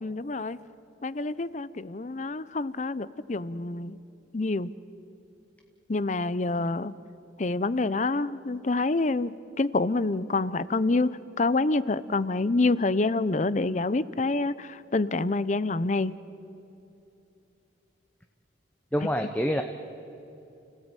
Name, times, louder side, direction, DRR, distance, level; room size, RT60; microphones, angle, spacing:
voice 1, 0.0-0.6 1.0-4.0 4.3-4.7 5.9-7.0 7.4-16.2 19.0-19.1, left 3 dB, 40° left, 17 dB, 0.6 m, -27 dB
voice 2, 18.9-19.6, equal, 10° left, 5 dB, 0.8 m, -26 dB
30.0 x 16.5 x 9.0 m, 2.9 s
head